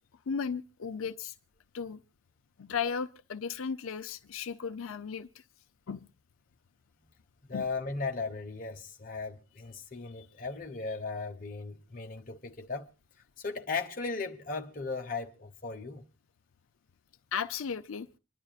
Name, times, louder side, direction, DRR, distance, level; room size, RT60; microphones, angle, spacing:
voice 1, 0.3-1.3 1.7-2.0 2.6-5.3 5.9-6.1 7.5-7.7 17.3-18.1, left 6 dB, 90° left, 0.6 m, -35 dB
voice 2, 7.5-12.9 13.4-16.0, left 4 dB, 40° left, 1.1 m, -37 dB
26.5 x 11.0 x 2.4 m
head